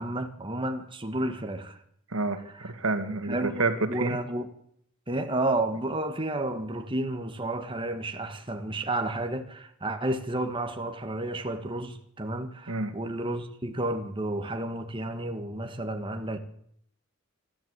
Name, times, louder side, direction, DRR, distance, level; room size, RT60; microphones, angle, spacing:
voice 1, 0.0-1.8 2.6-2.7 3.3-3.6 3.9-4.5 5.1-16.4, right 1 dB, 25° right, 1.8 m, -31 dB
voice 2, 2.1-4.2 12.7-12.9, right 3 dB, 75° right, 2.4 m, -29 dB
25.5 x 13.0 x 8.3 m
head